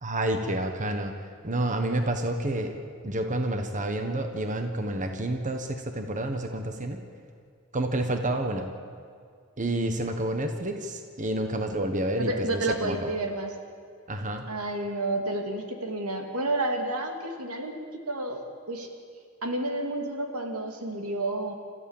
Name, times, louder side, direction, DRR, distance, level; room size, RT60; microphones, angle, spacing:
voice 1, 0.0-1.2 1.4-2.7 3.0-7.0 7.7-8.7 9.6-13.1 14.1-14.4, right 1 dB, 35° right, 6 dB, 1.3 m, -29 dB
voice 2, 12.2-13.5 14.5-18.4 18.7-18.9 19.4-21.5, right 2 dB, 90° right, 4 dB, 2.6 m, -30 dB
28.0 x 14.5 x 7.3 m, 2.2 s
head